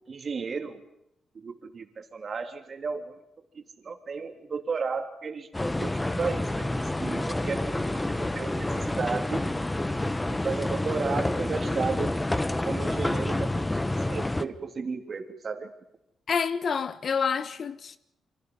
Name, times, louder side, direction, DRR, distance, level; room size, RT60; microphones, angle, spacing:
voice 1, 0.1-0.8 1.3-3.2 3.5-5.5 5.8-9.5 10.0-12.2 12.7-13.8 14.1-15.7, right 5 dB, 45° right, 3.3 m, -34 dB
sound 1, 5.5-14.4, left 1 dB, 15° left, 1.2 m, -28 dB
voice 2, 16.3-18.0, left 6 dB, 55° left, 1.2 m, -28 dB
29.5 x 25.0 x 5.5 m
cardioid pair, 85°, 0 cm